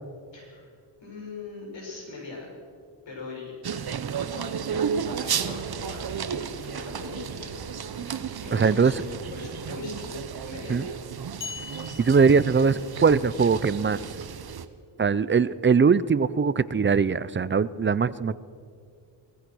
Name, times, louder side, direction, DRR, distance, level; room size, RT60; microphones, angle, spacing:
voice 1, 0.3-0.7 1.0-2.5 3.1-3.5 4.3-4.6 5.1-7.6 8.4-10.2 10.5-10.9, left 3 dB, 80° left, -2 dB, 6.8 m, -40 dB
sound 1, 3.6-14.6, right 7 dB, 55° right, 1.0 m, -33 dB
voice 2, 8.5-9.0 10.7-10.9 12.0-14.0 15.0-18.4, right 5 dB, 25° right, 17 dB, 0.5 m, -21 dB
sound 2, 11.4-13.2, left 6 dB, 45° left, 0.9 m, -41 dB
24.0 x 17.5 x 6.2 m, 2.2 s
wide cardioid pair, 160°, 44 cm